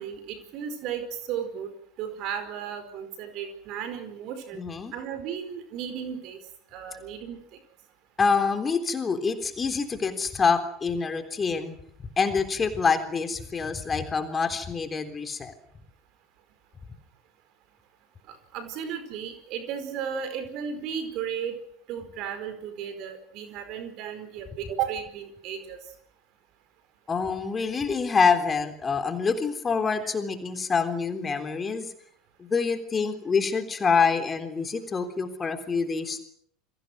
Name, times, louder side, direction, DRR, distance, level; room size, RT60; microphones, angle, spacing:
voice 1, 0.0-1.7 2.0-4.6 4.9-6.4 6.7-7.6 18.3-21.6 21.9-25.8 30.0-30.1, right 8 dB, 45° right, 10 dB, 4.7 m, -34 dB
voice 2, 4.6-4.9 8.2-11.8 12.2-15.5 27.1-31.9 32.4-36.2, left 5 dB, 20° left, 7 dB, 3.6 m, -26 dB
29.5 x 23.0 x 6.3 m, 0.66 s
figure-of-eight pair, 75°, 0 cm